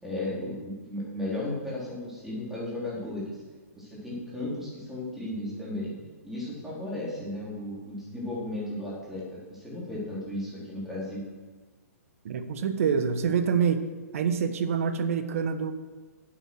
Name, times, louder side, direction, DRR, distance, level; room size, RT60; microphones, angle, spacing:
voice 1, 0.0-3.4 3.8-6.0 6.2-11.2, left 1 dB, 5° right, -7 dB, 4.1 m, -35 dB
voice 2, 12.2-13.8 14.1-15.7, right 6 dB, 60° right, 10 dB, 1.1 m, -26 dB
8.6 x 8.3 x 6.4 m, 1.3 s
hypercardioid pair, 135°, 9 cm